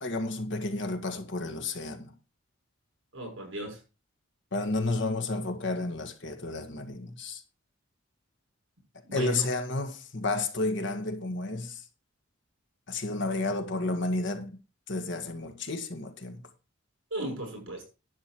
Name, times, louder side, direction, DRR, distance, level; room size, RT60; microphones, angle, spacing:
voice 1, 0.0-2.1 4.5-7.4 9.1-11.8 12.9-14.5 14.9-16.4, left 2 dB, 60° left, 1.8 m, -31 dB
voice 2, 3.1-3.8 9.1-9.4 17.1-17.9, right 1 dB, 70° right, 6.3 m, -36 dB
11.0 x 8.0 x 4.6 m
head